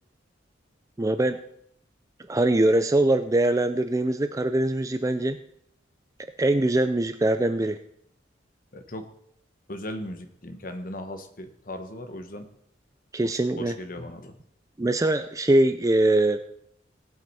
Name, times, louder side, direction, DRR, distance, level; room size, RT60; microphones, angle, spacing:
voice 1, 1.0-1.4 2.3-5.4 6.4-7.8 13.1-13.7 14.8-16.4, right 1 dB, 20° right, 9 dB, 0.4 m, -22 dB
voice 2, 8.7-9.1 9.7-12.5 13.3-14.3, left 1 dB, 50° left, 7 dB, 1.2 m, -37 dB
18.0 x 7.9 x 4.2 m, 0.72 s
head